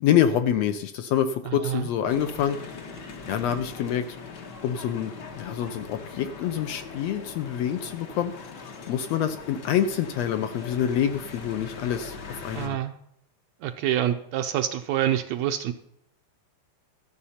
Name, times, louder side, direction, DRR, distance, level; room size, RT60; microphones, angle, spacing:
voice 1, 0.0-2.6 3.2-4.1 4.6-8.5 8.9-12.8, left 9 dB, 75° left, 9 dB, 1.6 m, -26 dB
sound 1, 2.1-12.7, left 4 dB, 55° left, 1.2 m, -41 dB
voice 2, 12.5-12.9 13.6-15.7, right 11 dB, 75° right, 7 dB, 1.7 m, -26 dB
13.5 x 7.8 x 5.6 m, 0.77 s
omnidirectional pair, 3.5 m